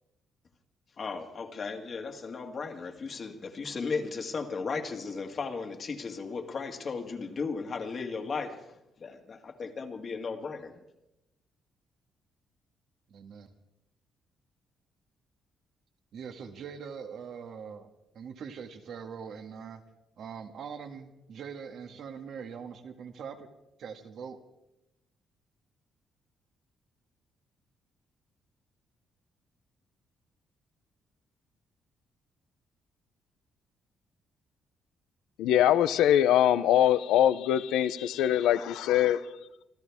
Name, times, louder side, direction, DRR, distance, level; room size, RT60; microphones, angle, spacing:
voice 1, 1.0-10.8, left 4 dB, 45° left, 2.0 m, -36 dB
voice 2, 13.1-13.5 16.1-17.9 18.1-19.8 20.2-23.5 23.8-24.4, right 6 dB, 65° right, 1.9 m, -42 dB
voice 3, 35.4-39.2, left 11 dB, 90° left, 0.7 m, -23 dB
26.0 x 13.5 x 3.6 m
cardioid pair, 90°, 0 cm